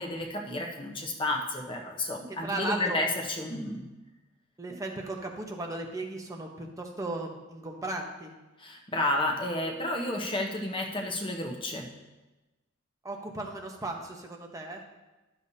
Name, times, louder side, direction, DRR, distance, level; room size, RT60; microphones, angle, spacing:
voice 1, 0.0-3.1 3.4-3.9 8.6-11.9, left 1 dB, 25° left, 1 dB, 0.8 m, -31 dB
voice 2, 2.3-3.0 4.6-8.3 13.0-14.8, right 2 dB, 15° right, 1 dB, 0.9 m, -36 dB
11.5 x 6.9 x 2.7 m, 1.1 s
head